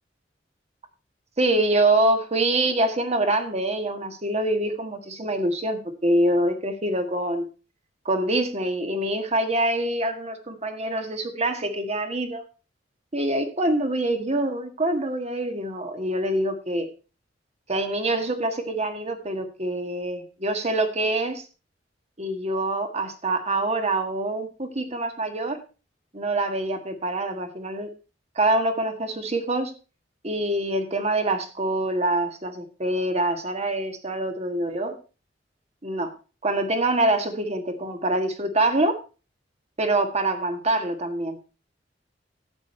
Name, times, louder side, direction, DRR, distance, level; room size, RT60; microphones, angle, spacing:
voice 1, 1.4-7.5 8.0-12.4 13.1-16.9 17.7-21.4 22.2-25.6 26.1-27.9 28.3-29.7 30.2-35.0 35.8-36.1 36.4-39.0 39.8-41.4, right 1 dB, 35° right, 7 dB, 1.7 m, -25 dB
11.5 x 8.5 x 4.4 m, 0.33 s
head